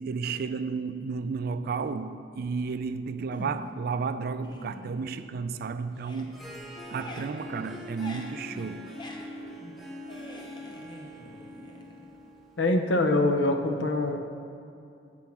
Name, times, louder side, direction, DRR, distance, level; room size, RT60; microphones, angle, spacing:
voice 1, 0.0-8.9, right 5 dB, 55° right, 0.3 m, -33 dB
sound 1, 3.3-3.9 4.2-5.6 5.9-12.4, left 1 dB, 25° left, 0.7 m, -46 dB
Harp, 6.1-13.2, equal, ahead, 0.9 m, -44 dB
voice 2, 12.6-14.2, left 2 dB, 85° left, 0.7 m, -24 dB
7.7 x 4.5 x 7.1 m
head